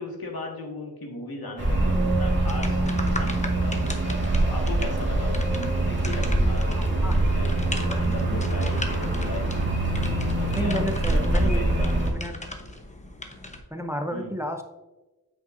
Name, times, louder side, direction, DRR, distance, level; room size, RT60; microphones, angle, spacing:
voice 1, 0.0-9.6 10.1-11.9 14.1-14.3, left 2 dB, 70° left, 0 dB, 1.9 m, -37 dB
sound 1, 1.6-12.1, right 2 dB, 30° right, 1.8 m, -24 dB
sound 2, 2.5-13.6, left 1 dB, 20° left, 0.9 m, -38 dB
voice 2, 7.0-8.0 8.3-8.7 10.5-11.8 12.1-12.3 13.7-14.6, right 1 dB, 5° right, 4 dB, 0.6 m, -32 dB
9.0 x 8.0 x 2.6 m, 1.1 s
wide cardioid pair, 110°, 37 cm